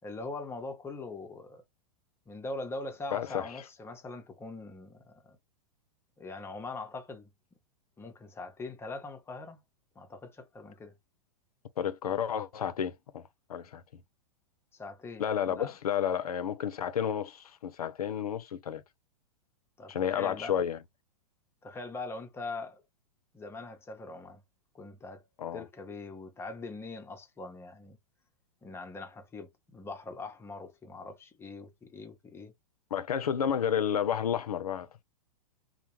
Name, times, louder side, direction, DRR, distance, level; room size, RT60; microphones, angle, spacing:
voice 1, 0.0-1.6 2.3-5.4 6.2-7.3 8.0-9.6 10.0-10.9 14.7-15.7 19.8-20.6 21.6-22.8 23.3-24.4 24.7-25.3 25.5-28.0 28.6-32.5, left 3 dB, 15° left, 0.6 m, -42 dB
voice 2, 3.1-3.6 11.8-14.0 15.2-18.8 19.9-20.8 25.4-25.6 32.9-34.9, left 8 dB, 85° left, 0.4 m, -31 dB
2.2 x 2.0 x 3.0 m
hypercardioid pair, 105°, 19 cm